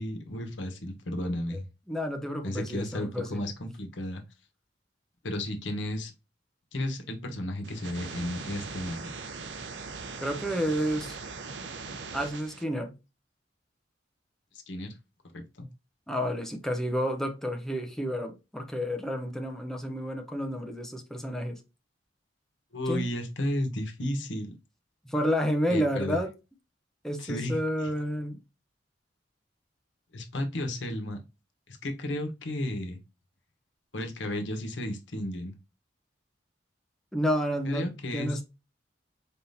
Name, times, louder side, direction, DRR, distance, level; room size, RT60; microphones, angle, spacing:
voice 1, 0.0-1.6 2.4-4.2 5.2-6.1 6.7-9.1 14.7-14.9 15.3-15.7 22.7-24.5 25.7-26.2 27.2-27.6 30.1-31.2 31.7-33.0 33.9-35.6 37.6-38.4, left 1 dB, 80° left, 1.0 m, -33 dB
voice 2, 1.9-3.4 10.2-11.2 12.1-12.9 16.1-21.6 22.9-23.0 25.0-26.3 27.0-28.4 37.1-38.4, equal, 5° left, 0.7 m, -30 dB
sound 1, 7.6-12.6, right 4 dB, 75° right, 0.7 m, -40 dB
4.2 x 3.7 x 2.7 m
head